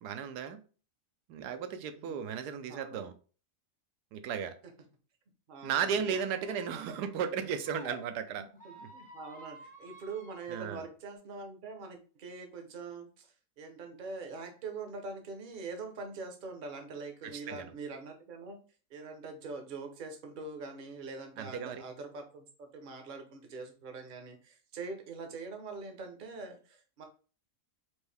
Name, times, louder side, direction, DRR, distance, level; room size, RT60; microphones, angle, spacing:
voice 1, 0.0-0.6 1.3-3.1 4.1-4.5 5.6-8.4 8.8-8.9 10.5-10.8 17.2-17.7 21.4-21.8, right 7 dB, 85° right, 9 dB, 1.2 m, -35 dB
voice 2, 2.7-3.1 5.5-6.0 6.7-6.9 8.6-18.6 18.9-27.0, right 4 dB, 45° right, 4 dB, 0.7 m, -43 dB
Squeak, 6.0-8.0 8.5-10.7, right 1 dB, 10° left, 0.4 m, -51 dB
4.5 x 2.6 x 3.3 m, 0.38 s
omnidirectional pair, 1.7 m